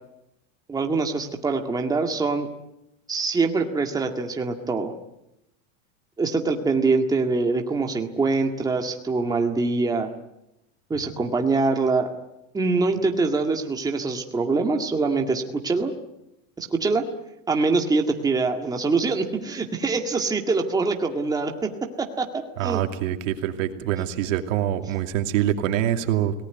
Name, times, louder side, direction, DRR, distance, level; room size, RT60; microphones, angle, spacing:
voice 1, 0.7-2.5 3.1-4.9 6.2-10.1 10.9-12.1 12.5-15.9 16.6-17.1 17.5-22.8, right 3 dB, 10° right, 3 dB, 1.9 m, -24 dB
voice 2, 22.6-26.3, right 11 dB, 85° right, 6 dB, 2.7 m, -25 dB
28.5 x 19.0 x 9.3 m, 0.86 s
supercardioid pair, 160°, 38 cm